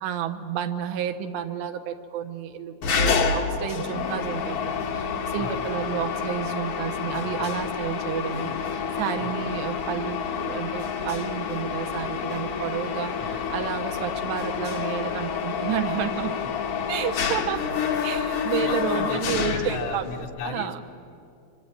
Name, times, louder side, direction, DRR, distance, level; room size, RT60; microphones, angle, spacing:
voice 1, 0.0-16.3 16.9-17.7 18.0-20.0 20.4-20.8, right 9 dB, 80° right, 6 dB, 3.2 m, -31 dB
Mechanisms, 2.8-20.2, left 6 dB, 65° left, 1.4 m, -28 dB
voice 2, 18.4-20.8, left 6 dB, 85° left, 4 dB, 3.9 m, -35 dB
26.0 x 25.5 x 8.7 m, 2.4 s
omnidirectional pair, 5.1 m